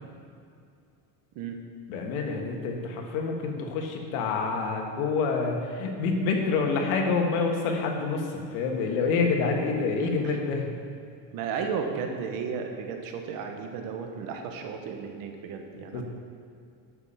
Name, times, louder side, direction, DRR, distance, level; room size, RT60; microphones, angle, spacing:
voice 1, 1.9-10.7 15.7-16.0, left 4 dB, 90° left, 2 dB, 1.7 m, -27 dB
voice 2, 10.0-10.4 11.3-16.0, right 6 dB, 55° right, 4 dB, 1.2 m, -34 dB
9.7 x 7.0 x 5.7 m, 2.4 s
cardioid pair, 160°, 41 cm